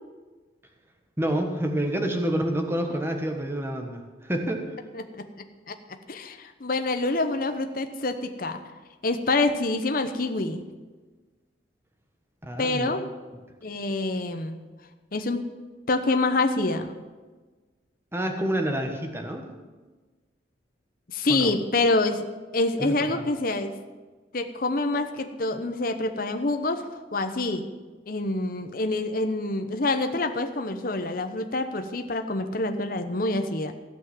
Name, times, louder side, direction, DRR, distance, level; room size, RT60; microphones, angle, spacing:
voice 1, 1.2-4.8 12.4-12.9 18.1-19.5 21.3-21.5 22.8-23.2, right 1 dB, 15° right, 4 dB, 1.4 m, -28 dB
voice 2, 4.9-5.3 5.7-5.8 6.1-8.6 9.0-10.6 12.6-13.1 13.6-14.6 15.1-15.4 15.9-16.9 21.1-22.2 22.5-23.8 24.3-27.7 28.1-33.7, left 2 dB, 50° left, 7 dB, 0.9 m, -26 dB
16.5 x 5.9 x 9.3 m, 1.3 s
head